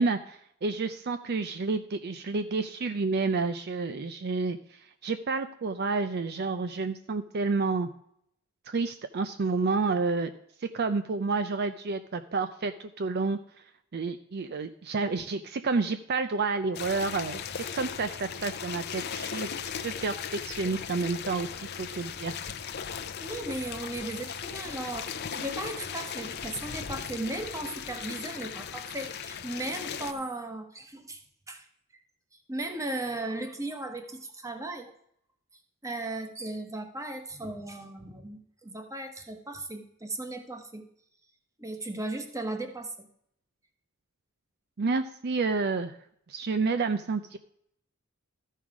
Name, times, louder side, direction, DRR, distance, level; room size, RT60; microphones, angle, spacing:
voice 1, 0.0-7.9 8.7-10.3 10.6-13.4 13.9-17.4 17.7-19.5 19.8-20.1 20.4-22.3 44.8-46.0 46.3-47.4, right 4 dB, 55° right, 9 dB, 0.5 m, -29 dB
sound 1, 16.7-30.1, left 7 dB, 55° left, 0.7 m, -37 dB
voice 2, 23.2-31.2 31.5-31.7 32.5-34.9 35.8-40.8 41.6-43.1, right 2 dB, 15° right, 5 dB, 1.2 m, -36 dB
13.5 x 5.6 x 4.8 m, 0.69 s
head